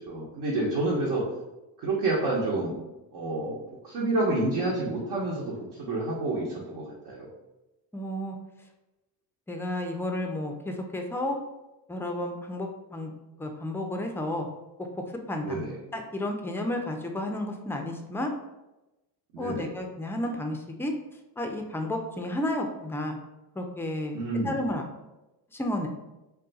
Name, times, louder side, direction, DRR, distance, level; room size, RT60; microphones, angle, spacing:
voice 1, 0.1-1.2 1.8-2.8 3.1-5.5 5.8-7.3 15.4-15.8 19.3-19.7 24.1-24.6, right 2 dB, 65° right, -6 dB, 0.9 m, -29 dB
voice 2, 7.9-8.4 9.5-11.4 11.9-13.1 13.4-14.5 15.3-15.6 15.9-18.3 19.4-20.9 21.4-23.2 23.6-24.2 24.4-24.8 25.5-25.9, left 1 dB, 5° left, 3 dB, 0.3 m, -32 dB
2.4 x 2.3 x 3.9 m, 0.99 s
supercardioid pair, 75°, 45 cm